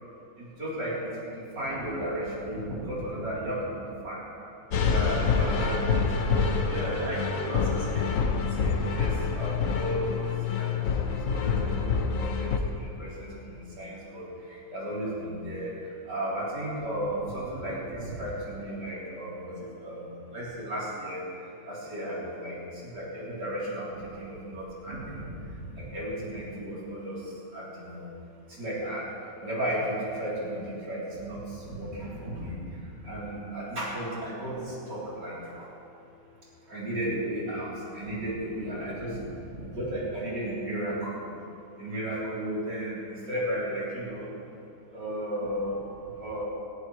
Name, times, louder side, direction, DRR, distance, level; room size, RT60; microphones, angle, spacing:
voice 1, 0.4-4.2 4.8-8.1 8.6-10.7 11.0-28.1 28.5-35.7 36.7-41.2 41.8-44.3 44.9-45.8 46.1-46.4, right 1 dB, 60° right, -8 dB, 4.3 m, -34 dB
sound 1, 4.7-12.6, left 5 dB, 55° left, 1.0 m, -27 dB
19.5 x 13.5 x 3.2 m, 2.7 s
omnidirectional pair, 2.2 m